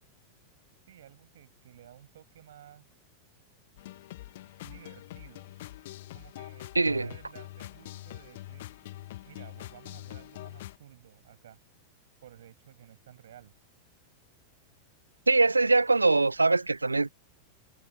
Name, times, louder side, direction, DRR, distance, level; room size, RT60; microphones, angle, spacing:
voice 1, 0.9-2.9 4.6-5.5 6.1-8.7 9.2-11.6 12.2-13.5, right 11 dB, 60° right, 8.0 m, -54 dB
sound 1, 3.8-10.8, left 16 dB, 55° left, 1.2 m, -44 dB
voice 2, 6.8-7.1 15.3-17.1, right 3 dB, 80° right, 0.4 m, -23 dB
figure-of-eight pair, 90°, 0 cm